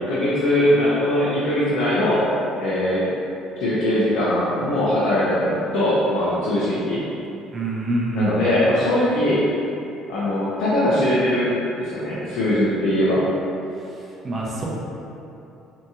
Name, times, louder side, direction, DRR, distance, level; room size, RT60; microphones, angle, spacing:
voice 1, 0.0-2.2 2.6-3.0 3.6-7.0 8.1-9.4 10.1-13.2, left 1 dB, 85° left, -9 dB, 0.5 m, -21 dB
voice 2, 7.5-8.4 14.2-14.6, right 2 dB, 25° right, -4 dB, 0.5 m, -25 dB
2.8 x 2.7 x 2.3 m, 2.8 s
cardioid pair, 135°, 0 cm